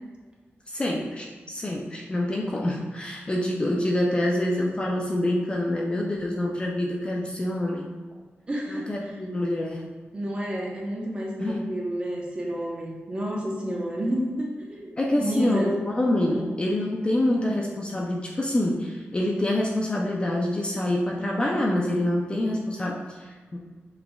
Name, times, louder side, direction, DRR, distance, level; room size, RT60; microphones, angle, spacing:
voice 1, 0.7-7.9 8.7-9.9 11.4-11.7 15.0-23.6, left 1 dB, 25° left, -2 dB, 0.4 m, -26 dB
voice 2, 8.5-9.2 10.1-15.8 16.3-16.5, right 1 dB, 25° right, -3 dB, 0.9 m, -30 dB
5.9 x 3.3 x 2.3 m, 1.4 s
wide cardioid pair, 150°, 4 cm